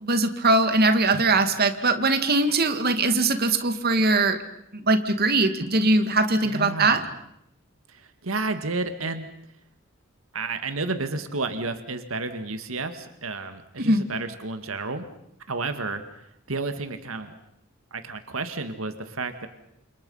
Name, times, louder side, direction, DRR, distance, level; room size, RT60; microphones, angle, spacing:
voice 1, 0.0-4.4 4.9-7.0 13.8-14.0, right 2 dB, 50° right, 8 dB, 2.2 m, -21 dB
voice 2, 6.4-7.0 7.9-9.3 10.3-15.1 15.5-16.0 16.5-17.3 17.9-19.5, right 3 dB, 90° right, 8 dB, 2.0 m, -31 dB
29.0 x 28.0 x 5.7 m, 0.77 s
head